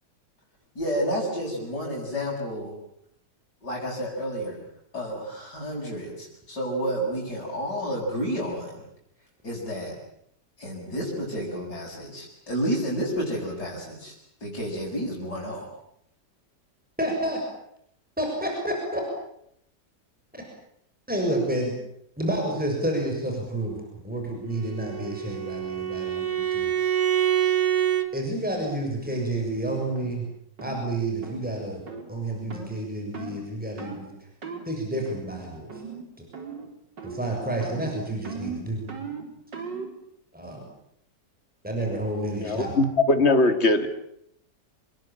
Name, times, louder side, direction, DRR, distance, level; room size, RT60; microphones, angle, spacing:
voice 1, 0.8-2.7 3.6-4.6 4.9-8.8 9.4-9.9 10.6-14.1 14.4-15.7, equal, 65° left, -6 dB, 7.5 m, -30 dB
voice 2, 17.0-17.4 18.2-19.0 20.3-20.4 21.1-21.7 22.2-23.8 24.0-26.7 28.1-30.3 30.6-31.8 32.1-34.1 34.6-35.8 37.0-38.8 40.3-40.7 41.6-42.7, right 1 dB, 5° right, 1 dB, 6.9 m, -29 dB
Bowed string instrument, 24.6-28.1, right 10 dB, 60° right, 2.3 m, -26 dB
sound 1, 30.0-30.1 30.6-30.8 31.2-31.4 31.9-32.1 32.5-32.7 33.1-33.4 33.8-34.0 34.4-34.7 35.1-35.4 35.7-36.1 36.3-36.7 37.0-37.3 37.6-39.9, right 5 dB, 85° right, 4.3 m, -38 dB
voice 3, 42.4-43.9, left 2 dB, 40° left, 8 dB, 2.6 m, -21 dB
27.0 x 21.5 x 9.0 m, 0.74 s
omnidirectional pair, 1.9 m